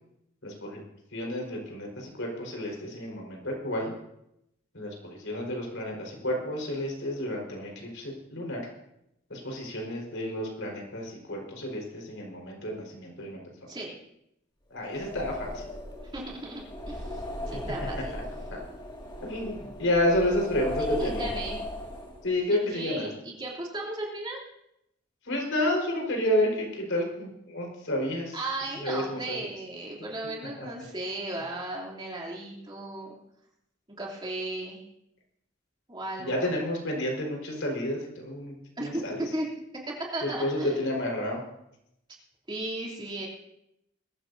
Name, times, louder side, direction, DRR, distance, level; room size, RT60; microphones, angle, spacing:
voice 1, 0.4-0.8 1.1-3.9 4.7-8.7 9.3-13.4 14.7-15.7 18.5-18.6 19.2-21.3 22.2-23.1 25.3-28.4 28.8-29.4 30.6-30.7 36.2-38.5 38.8-39.2 40.4-41.4, left 1 dB, 80° left, 0 dB, 4.6 m, -30 dB
sound 1, 14.8-22.4, left 1 dB, 25° left, 2.2 m, -37 dB
voice 2, 16.0-18.2 20.8-21.6 22.5-24.4 28.3-33.2 34.0-34.8 35.9-36.5 38.8-39.0 39.3-39.5 39.9-40.8 42.5-43.3, right 1 dB, 25° right, -3 dB, 3.0 m, -35 dB
21.5 x 14.5 x 2.7 m, 0.80 s
head